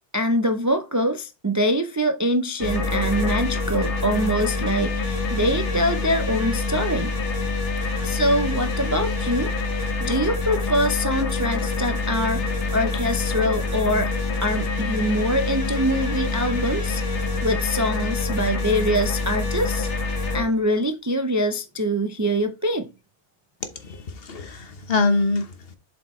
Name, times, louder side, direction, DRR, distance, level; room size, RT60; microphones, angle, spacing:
voice 1, 0.1-7.1 8.0-14.1 14.4-19.9 20.3-22.9, equal, 25° right, 0.4 m, -24 dB
sound 1, 2.6-20.4, left 3 dB, 70° left, 1.6 m, -26 dB
voice 2, 23.6-25.8, left 3 dB, 55° left, 1.2 m, -25 dB
7.5 x 5.0 x 3.1 m
omnidirectional pair, 1.2 m